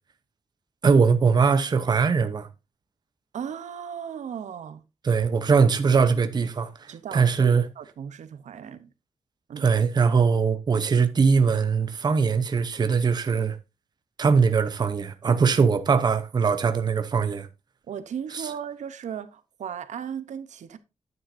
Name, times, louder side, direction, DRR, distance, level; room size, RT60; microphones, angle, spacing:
voice 1, 0.8-2.5 5.0-7.6 9.6-13.6 14.2-17.5 18.3-18.4, right 5 dB, 35° right, 0.8 m, -21 dB
voice 2, 3.3-4.8 6.9-8.9 9.5-9.6 17.9-20.8, right 8 dB, 90° right, 0.8 m, -36 dB
9.9 x 9.3 x 2.6 m
wide cardioid pair, 170°, 12 cm